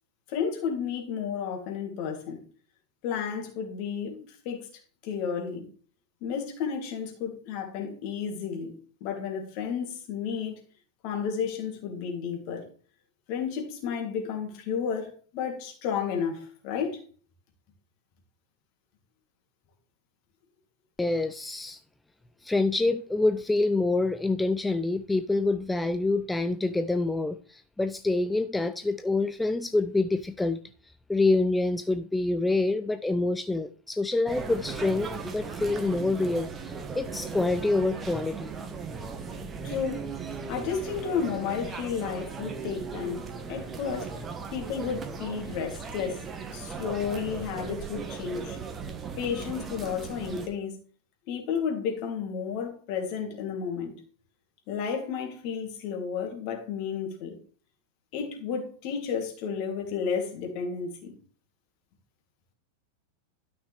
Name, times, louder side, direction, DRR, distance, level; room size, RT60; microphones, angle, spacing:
voice 1, 0.3-2.4 3.0-4.7 5.0-5.7 6.2-8.7 9.0-10.6 11.0-12.7 13.3-17.0 39.6-40.1 40.5-44.2 44.5-46.2 46.5-48.6 49.2-50.7 51.3-53.9 54.7-57.4 58.1-61.1, left 6 dB, 45° left, 2.6 m, -32 dB
voice 2, 21.0-21.8 22.4-30.6 31.1-38.5, left 2 dB, 5° left, 0.4 m, -26 dB
sound 1, 34.3-50.5, right 5 dB, 20° right, 1.3 m, -37 dB
12.0 x 6.0 x 3.3 m
figure-of-eight pair, 90°, 0 cm